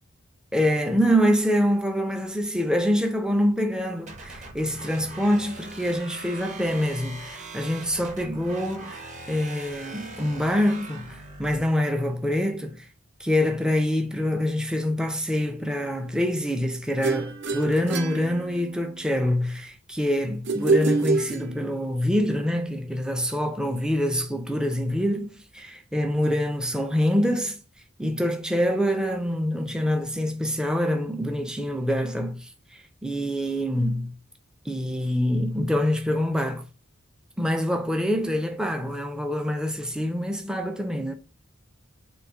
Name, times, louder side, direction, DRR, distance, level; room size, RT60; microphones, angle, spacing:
voice 1, 0.5-12.9 13.2-27.6 28.0-34.1 34.7-36.7 37.4-41.1, equal, 5° right, 0.4 m, -25 dB
sound 1, 4.1-11.6, right 2 dB, 35° right, 0.8 m, -41 dB
sound 2, 17.0-19.0 20.5-22.0, right 3 dB, 60° right, 0.5 m, -26 dB
3.9 x 2.7 x 4.4 m
head